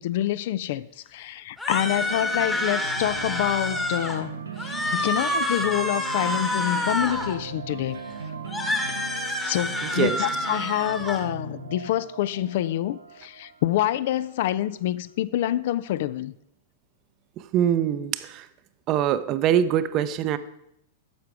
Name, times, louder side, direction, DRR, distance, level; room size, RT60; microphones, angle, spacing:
voice 1, 0.0-4.3 4.6-8.0 9.4-16.3, left 13 dB, 55° left, 18 dB, 0.3 m, -27 dB
sound 1, 1.6-4.2 4.6-7.4 8.5-11.2, left 1 dB, 10° left, 1.1 m, -28 dB
sound 2, 1.7-14.6, right 4 dB, 80° right, 0.7 m, -39 dB
voice 2, 9.8-10.2 17.4-18.5 18.9-20.4, right 10 dB, 35° right, 13 dB, 0.5 m, -23 dB
9.5 x 6.8 x 4.8 m, 0.80 s
figure-of-eight pair, 100°, 0 cm